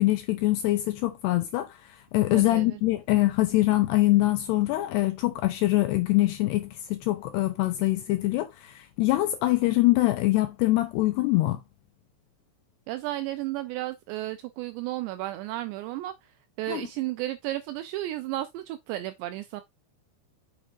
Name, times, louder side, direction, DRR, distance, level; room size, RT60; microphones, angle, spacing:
voice 1, 0.0-1.8 2.1-11.6 16.7-16.8, left 17 dB, 85° left, 2.4 m, -24 dB
voice 2, 2.3-2.8 12.9-19.6, right 15 dB, 85° right, 2.5 m, -33 dB
7.3 x 6.5 x 2.5 m
omnidirectional pair, 5.5 m